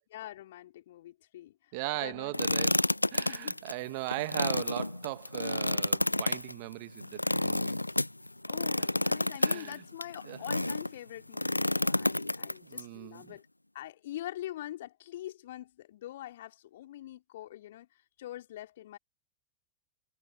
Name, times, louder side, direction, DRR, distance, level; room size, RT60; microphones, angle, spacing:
voice 1, 0.1-1.7 2.0-2.3 3.3-3.6 8.5-13.5 13.7-19.0, left 13 dB, 55° left, 3.7 m, -44 dB
voice 2, 1.7-7.8 9.4-9.8 10.3-10.4 12.6-13.3, right 26 dB, 50° right, 1.9 m, -39 dB
sound 1, 2.3-10.9 11.3-12.8, left 1 dB, 85° left, 0.3 m, -30 dB
figure-of-eight pair, 90°, 0 cm